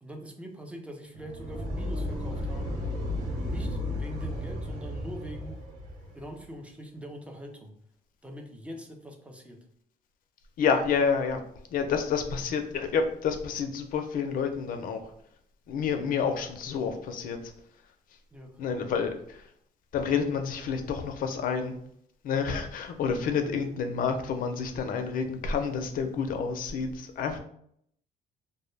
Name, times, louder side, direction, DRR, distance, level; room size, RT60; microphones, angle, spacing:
voice 1, 0.0-2.8 3.4-5.6 6.1-7.8 8.2-9.6 18.3-18.6 23.4-23.5, equal, 5° right, 3 dB, 0.4 m, -43 dB
sound 1, 1.1-6.3, left 1 dB, 55° right, 0.7 m, -34 dB
voice 2, 10.6-11.4 11.7-15.1 15.7-17.4 18.6-19.5 19.9-21.8 22.2-27.4, left 6 dB, 55° left, 6 dB, 0.4 m, -29 dB
2.1 x 2.0 x 3.1 m, 0.68 s
cardioid pair, 110°, 17 cm